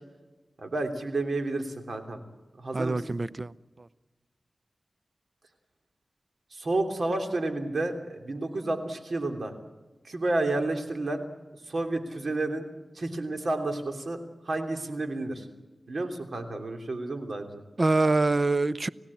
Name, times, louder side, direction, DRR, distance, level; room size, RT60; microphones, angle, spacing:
voice 1, 0.6-2.2 2.6-3.2 6.5-9.5 10.0-11.3 11.7-12.7 12.9-14.2 14.4-15.4 15.9-17.6, right 2 dB, 70° right, 3.1 m, -30 dB
voice 2, 2.7-3.5 3.8-3.9 17.8-18.9, right 2 dB, 45° right, 0.7 m, -25 dB
30.0 x 16.5 x 8.6 m
wide cardioid pair, 60°, 0 cm